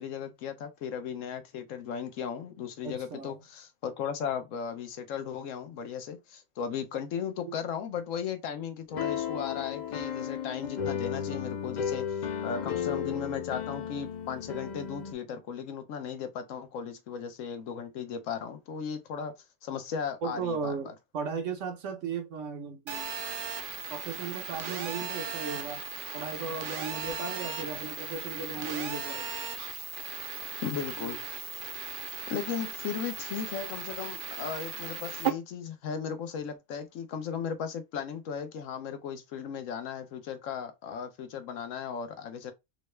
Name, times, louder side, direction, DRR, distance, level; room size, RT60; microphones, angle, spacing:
voice 1, 0.0-19.3 19.6-20.7 30.6-31.2 32.3-42.5, left 7 dB, 80° left, 1.1 m, -36 dB
voice 2, 2.8-3.4 7.5-7.6 20.2-23.1 23.9-25.8 26.1-29.4 31.0-31.2, right 5 dB, 70° right, 1.1 m, -36 dB
sound 1, 8.9-15.1, left 8 dB, 60° left, 0.4 m, -34 dB
Telephone, 22.9-35.3, right 5 dB, 55° right, 0.6 m, -37 dB
3.9 x 2.2 x 3.1 m
omnidirectional pair, 1.3 m